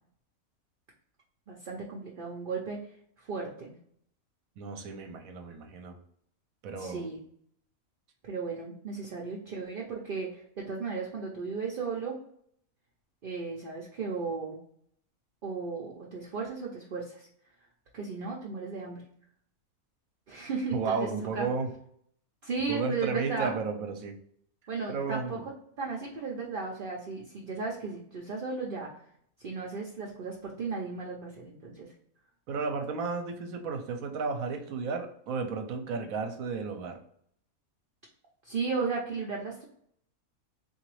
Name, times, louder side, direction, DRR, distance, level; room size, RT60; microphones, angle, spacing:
voice 1, 1.5-2.9 3.2-3.7 6.8-7.2 8.2-12.2 13.2-14.6 15.4-17.3 17.9-19.0 20.3-21.5 22.4-23.6 24.7-25.4 25.8-29.0 29.4-31.9 38.4-39.7, right 4 dB, 50° right, -2 dB, 0.6 m, -35 dB
voice 2, 4.6-6.0 6.6-7.1 20.7-21.7 22.6-24.2 24.9-25.5 32.5-37.0, right 4 dB, 75° right, 5 dB, 1.0 m, -33 dB
3.8 x 2.6 x 3.0 m, 0.66 s
omnidirectional pair, 1.5 m